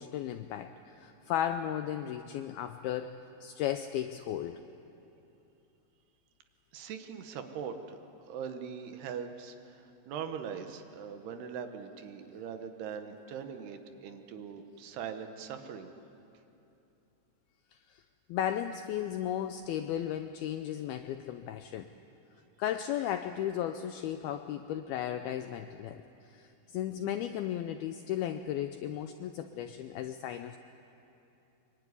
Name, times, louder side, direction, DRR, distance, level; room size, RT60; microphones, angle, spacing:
voice 1, 0.0-4.6 18.3-21.9 22.6-26.0 26.3-30.6, left 10 dB, 80° left, 9 dB, 2.2 m, -35 dB
voice 2, 6.7-8.0 8.3-9.5 10.1-15.9, right 7 dB, 70° right, 7 dB, 3.2 m, -41 dB
24.0 x 23.5 x 9.8 m, 2.8 s
omnidirectional pair, 5.1 m